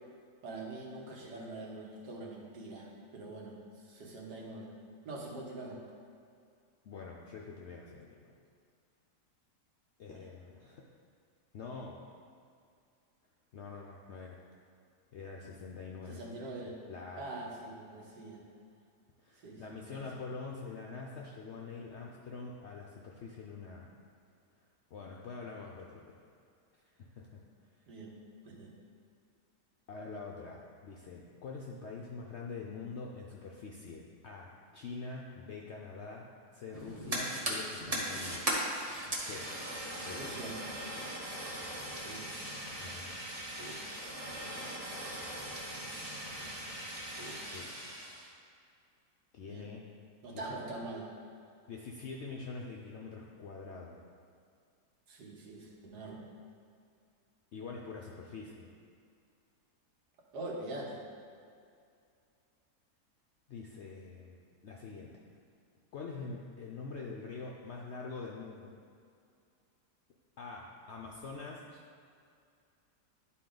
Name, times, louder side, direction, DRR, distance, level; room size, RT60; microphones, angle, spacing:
voice 1, 0.4-3.6 3.8-4.7 5.0-5.8 10.1-10.2 16.1-16.8 17.2-18.4 19.4-20.0 27.9-28.1 28.4-28.7 40.1-40.5 42.0-42.2 49.5-49.7 50.2-51.1 55.1-56.2 60.3-61.0, right 2 dB, 80° right, -2 dB, 1.7 m, -43 dB
voice 2, 6.8-8.3 10.0-10.9 11.5-12.0 13.5-14.4 15.1-16.2 16.9-17.2 19.2-23.9 24.9-26.2 27.0-27.4 29.9-38.6 39.2-39.5 40.0-40.3 42.8-43.1 47.5-47.7 49.3-49.9 50.3-50.4 51.7-54.0 57.5-58.7 63.5-64.4 64.6-65.2 65.9-68.7 70.4-71.6, left 4 dB, 65° left, -2 dB, 0.6 m, -45 dB
Fire, 36.7-48.3, right 1 dB, 25° right, 1.0 m, -39 dB
11.0 x 4.2 x 3.8 m, 2.3 s
omnidirectional pair, 1.8 m